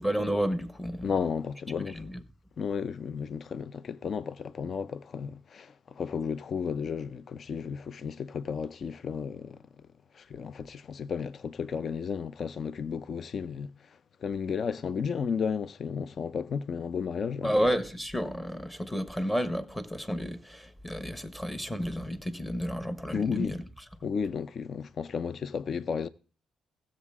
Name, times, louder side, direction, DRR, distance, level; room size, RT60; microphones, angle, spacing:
voice 1, 0.0-1.1 1.9-2.2 17.4-23.6 24.0-24.1, equal, 10° left, 1.2 m, -31 dB
voice 2, 1.0-2.1 2.6-9.6 10.1-13.7 14.2-17.5 23.1-23.5 24.0-26.1, left 6 dB, 50° left, 0.5 m, -33 dB
16.0 x 7.5 x 3.6 m
cardioid pair, 90°, 0 cm